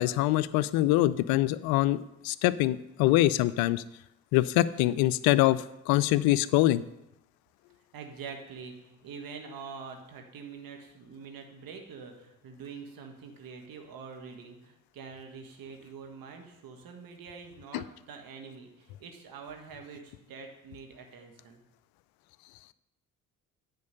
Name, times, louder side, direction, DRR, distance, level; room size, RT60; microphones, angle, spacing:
voice 1, 0.0-3.8 4.3-6.8 17.7-17.8, left 16 dB, 60° left, 16 dB, 0.5 m, -24 dB
voice 2, 7.9-21.6, right 5 dB, 55° right, 3 dB, 1.6 m, -45 dB
9.5 x 4.6 x 6.7 m, 0.86 s
figure-of-eight pair, 45°, 42 cm